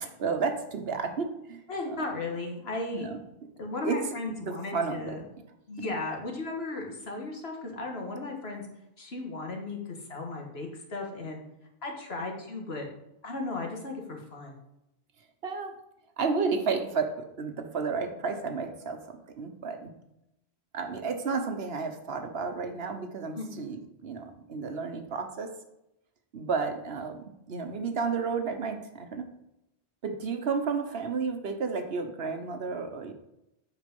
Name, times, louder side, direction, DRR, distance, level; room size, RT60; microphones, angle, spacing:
voice 1, 0.2-2.0 2.9-3.2 3.8-4.0 4.4-5.1 15.4-15.7 16.2-19.9 20.7-25.5 26.3-29.3 30.0-33.1, right 5 dB, 70° right, 6 dB, 1.2 m, -32 dB
voice 2, 1.7-3.1 3.6-5.2 5.7-8.6 9.0-11.4 11.8-12.9 13.2-14.5 23.3-23.5, left 3 dB, 80° left, 1 dB, 1.8 m, -35 dB
8.3 x 5.1 x 5.3 m, 0.86 s
omnidirectional pair, 1.1 m